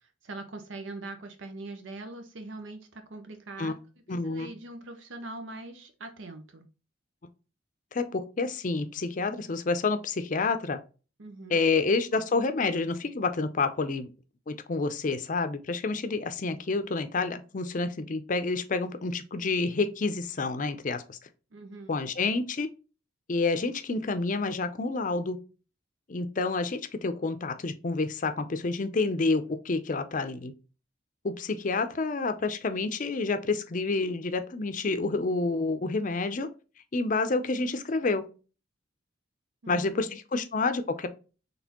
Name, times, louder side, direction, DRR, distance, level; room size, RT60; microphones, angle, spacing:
voice 1, 0.0-3.7 4.1-6.7 11.2-11.6 21.5-21.9 39.6-40.2, right 2 dB, 85° right, 0.7 m, -42 dB
voice 2, 4.1-4.5 7.9-10.8 11.5-14.1 14.5-21.2 21.9-22.7 23.3-25.4 26.1-30.5 31.2-36.5 36.9-38.3 39.7-41.1, left 3 dB, 45° left, 0.5 m, -29 dB
4.1 x 3.3 x 2.9 m
head